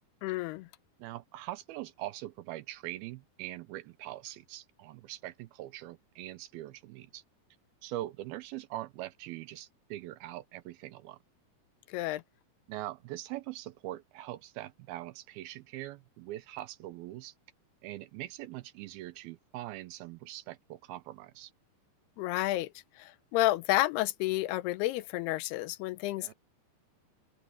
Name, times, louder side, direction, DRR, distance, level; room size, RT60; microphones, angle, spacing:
voice 1, 0.2-0.7 11.9-12.2 22.2-22.7 23.0-26.3, left 17 dB, 85° left, 2.8 m, -30 dB
voice 2, 1.0-7.2 7.8-11.2 12.7-17.3 17.8-21.5 26.2-26.3, right 15 dB, 80° right, 2.5 m, -42 dB
open air
omnidirectional pair, 4.5 m